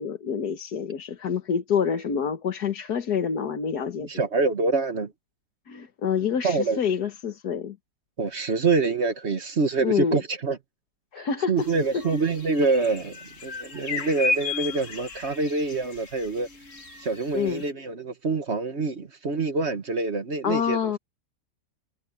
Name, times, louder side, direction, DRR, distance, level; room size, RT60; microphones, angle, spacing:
voice 1, 0.0-4.2 5.7-7.8 9.8-10.2 11.1-11.7 11.9-12.0 17.3-17.6 20.4-21.0, left 7 dB, 80° left, 1.9 m, -27 dB
voice 2, 4.0-5.1 6.4-6.8 8.2-10.6 11.2-16.5 17.0-21.0, right 3 dB, 45° right, 1.7 m, -26 dB
sound 1, 11.6-17.7, left 4 dB, 50° left, 2.2 m, -34 dB
omnidirectional pair, 1.7 m